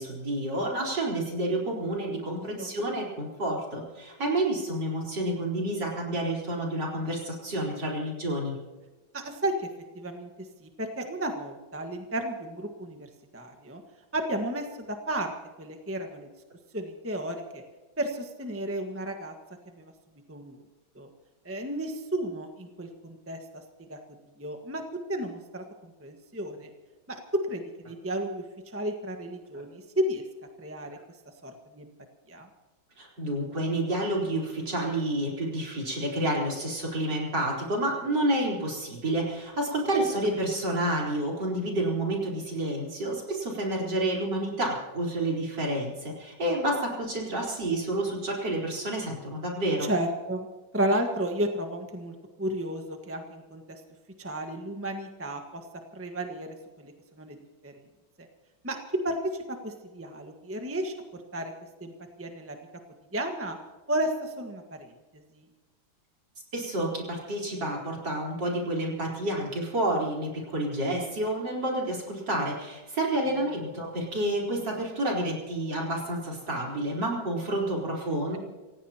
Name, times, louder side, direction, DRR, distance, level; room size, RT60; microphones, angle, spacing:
voice 1, 0.0-8.6 29.5-29.6 33.0-49.9 66.5-78.4, right 1 dB, 55° right, -2 dB, 4.9 m, -29 dB
voice 2, 2.3-2.7 9.1-9.7 9.9-10.3 10.6-13.1 13.3-13.8 14.1-15.3 15.6-16.3 16.7-17.6 18.0-19.3 19.8-19.9 20.3-20.6 20.9-21.1 21.4-23.4 23.9-24.0 24.4-24.8 25.1-26.7 27.1-30.2 30.6-31.0 31.4-31.9 32.3-32.5 49.8-50.5 50.7-53.8 54.2-55.6 55.9-57.4 57.6-57.7 58.2-58.3 58.6-58.8 59.0-61.5 61.8-61.9 62.2-62.6 63.1-63.6 63.9-64.9 65.3-65.4 73.3-73.4, right 1 dB, 10° right, 4 dB, 1.2 m, -33 dB
27.5 x 16.5 x 2.9 m, 1.3 s
omnidirectional pair, 2.2 m